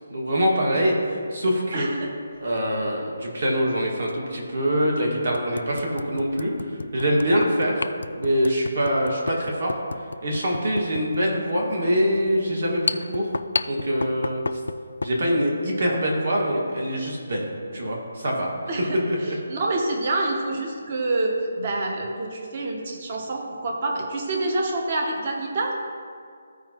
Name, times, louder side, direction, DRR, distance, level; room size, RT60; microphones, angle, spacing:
voice 1, 0.1-1.9 2.4-13.3 13.7-14.6 15.0-18.5 18.8-19.4, equal, 50° right, -1 dB, 1.7 m, -24 dB
voice 2, 1.7-2.1 18.7-25.8, right 2 dB, 30° right, 0 dB, 0.7 m, -27 dB
sound 1, 2.3-2.6 4.0-4.1 4.7-4.8 5.3-15.2, left 3 dB, 85° left, 0.3 m, -33 dB
14.0 x 4.8 x 2.9 m, 2.2 s
hypercardioid pair, 175°, 0 cm